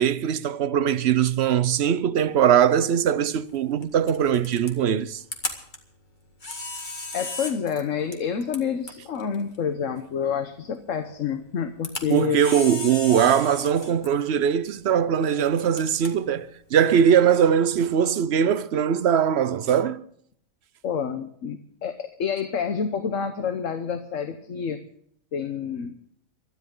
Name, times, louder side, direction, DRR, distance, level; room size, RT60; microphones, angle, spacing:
voice 1, 0.0-5.2 12.1-20.0, right 8 dB, 55° right, 0.9 m, -21 dB
Camera, 2.2-17.7, left 2 dB, 35° left, 2.0 m, -39 dB
voice 2, 7.1-12.4 20.8-24.8 25.3-25.9, left 7 dB, 65° left, 1.3 m, -28 dB
21.5 x 13.0 x 3.8 m
omnidirectional pair, 1.4 m